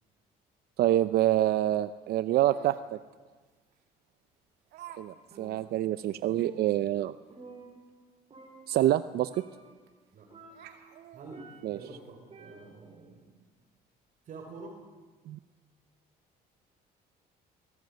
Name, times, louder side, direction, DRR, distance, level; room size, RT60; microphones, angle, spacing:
voice 1, 0.8-3.0 5.0-7.2 8.7-9.3 11.6-11.8 15.3-15.4, right 13 dB, 70° right, 13 dB, 0.7 m, -26 dB
Laughter, 2.5-2.9 3.7-3.8 4.7-5.0 5.3-5.4 5.9-6.0 6.4-6.5 8.4-8.5 8.8-8.9 9.9-10.1 10.5-12.1, right 11 dB, 85° right, 2.6 m, -50 dB
Percussion, 5.3-6.0 6.3-8.1 8.3-9.0 9.3-9.8 10.3-11.9 12.3-13.0, right 2 dB, 35° right, 5.1 m, -51 dB
voice 2, 11.1-13.3 14.2-14.8, right 3 dB, 55° right, 2 dB, 4.2 m, -47 dB
23.0 x 18.5 x 9.5 m, 1.4 s
cardioid pair, 110°, 17 cm